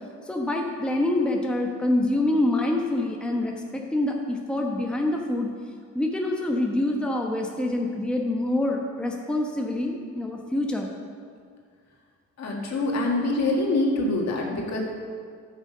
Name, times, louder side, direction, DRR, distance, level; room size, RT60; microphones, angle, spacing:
voice 1, 0.3-5.5 5.9-10.9, left 1 dB, 5° left, 0 dB, 1.0 m, -26 dB
voice 2, 12.4-14.8, left 2 dB, 60° left, -1 dB, 2.0 m, -25 dB
10.5 x 6.6 x 5.5 m, 2.1 s
cardioid pair, 90°, 30 cm